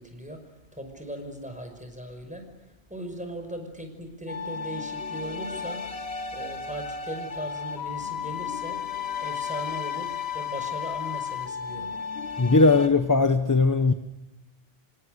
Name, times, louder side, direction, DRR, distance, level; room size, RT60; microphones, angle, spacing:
voice 1, 0.0-6.1 6.3-8.9 9.2-12.0, right 1 dB, 5° right, 5.6 m, -39 dB
sound 1, 4.3-12.9, left 6 dB, 90° left, 1.7 m, -33 dB
voice 2, 12.4-13.9, left 3 dB, 20° left, 0.9 m, -19 dB
27.5 x 26.0 x 6.6 m
omnidirectional pair, 1.0 m